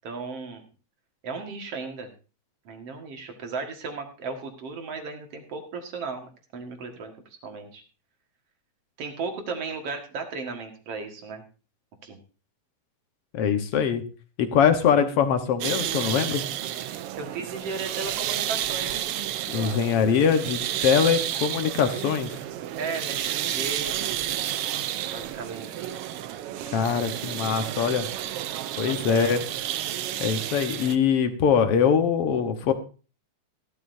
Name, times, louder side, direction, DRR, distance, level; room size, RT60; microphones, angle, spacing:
voice 1, 0.0-0.6 1.2-2.1 2.7-7.1 7.4-7.8 9.0-11.4 12.0-12.2 17.2-19.1 22.7-24.1 25.1-25.9 29.1-29.4, right 4 dB, 55° right, 4 dB, 2.7 m, -35 dB
voice 2, 13.3-14.0 14.4-16.5 19.5-22.3 26.7-28.1 28.8-29.4 30.2-32.7, left 7 dB, 60° left, 8 dB, 1.9 m, -23 dB
sound 1, 15.6-31.0, right 12 dB, 80° right, 1.3 m, -31 dB
16.5 x 12.5 x 2.7 m, 0.34 s
omnidirectional pair, 3.4 m